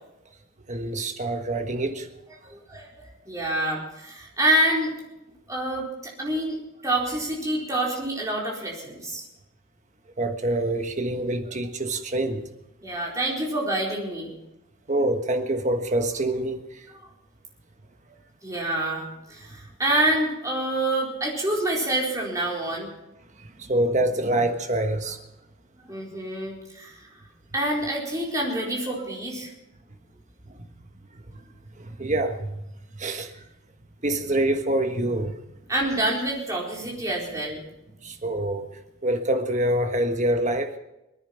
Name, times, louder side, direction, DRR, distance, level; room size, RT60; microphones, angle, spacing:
voice 1, 0.7-2.1 10.2-12.4 14.9-16.9 23.4-25.2 30.5-30.6 31.1-31.2 31.8-32.7 32.9-33.4 34.0-35.4 38.0-38.7 39.0-40.7, right 1 dB, 35° right, 1.4 m, -26 dB
voice 2, 2.5-4.9 5.5-6.6 6.8-9.2 12.8-14.3 18.4-22.9 25.9-27.1 27.5-29.5 35.7-37.6, right 1 dB, 15° right, 4.3 m, -27 dB
22.5 x 10.0 x 5.8 m
head